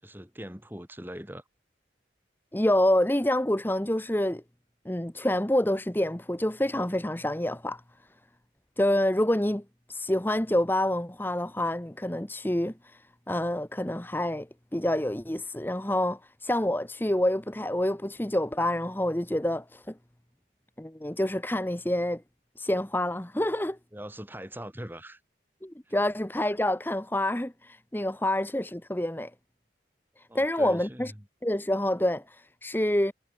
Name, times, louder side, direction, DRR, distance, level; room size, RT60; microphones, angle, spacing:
voice 1, 0.0-1.4 23.9-25.2 25.9-26.0 30.3-31.2, equal, 10° right, 7.2 m, -41 dB
voice 2, 2.5-4.4 4.8-7.8 8.8-9.6 9.9-14.5 14.7-19.9 20.8-22.2 22.6-23.8 25.6-29.3 30.2-31.1 31.4-33.1, left 1 dB, 10° left, 1.0 m, -27 dB
head